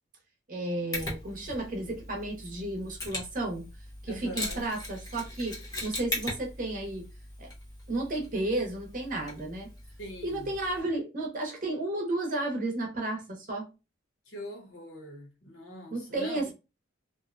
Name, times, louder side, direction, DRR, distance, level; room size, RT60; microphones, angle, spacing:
voice 1, 0.5-3.7 4.0-7.1 7.4-7.5 7.9-9.7 10.2-13.7 15.9-16.5, right 2 dB, 40° right, 0.7 m, -33 dB
Mechanisms, 0.9-10.8, left 1 dB, 20° left, 0.7 m, -40 dB
voice 2, 4.1-4.7 10.0-10.5 14.3-16.5, equal, 80° left, 0.9 m, -43 dB
2.6 x 2.1 x 2.5 m
head